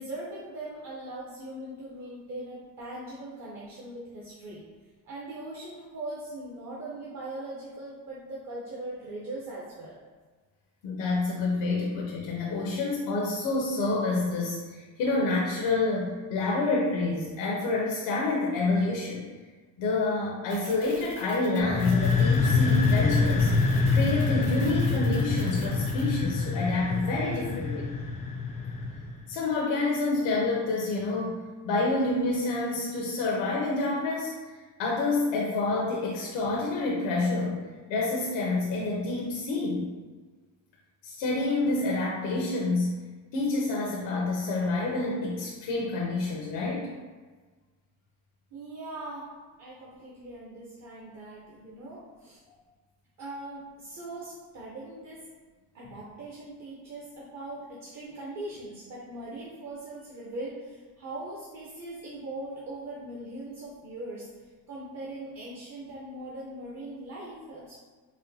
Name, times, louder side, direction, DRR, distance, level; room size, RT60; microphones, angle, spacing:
voice 1, 0.0-4.6 5.0-10.0 48.5-49.3 49.6-52.4 53.2-55.2 55.7-64.3 64.7-67.8, right 1 dB, 40° right, -6 dB, 0.7 m, -40 dB
voice 2, 10.8-19.3 19.8-23.5 23.9-27.9 29.3-34.4 34.8-37.6 37.9-39.9 41.0-43.0 43.3-46.9, left 2 dB, 75° left, -4 dB, 0.7 m, -28 dB
sound 1, 20.5-26.0, right 1 dB, 70° right, 1.3 m, -47 dB
sound 2, 21.6-29.2, left 4 dB, 20° left, 0.3 m, -25 dB
4.2 x 2.2 x 2.7 m, 1.4 s
cardioid pair, 105°, 44 cm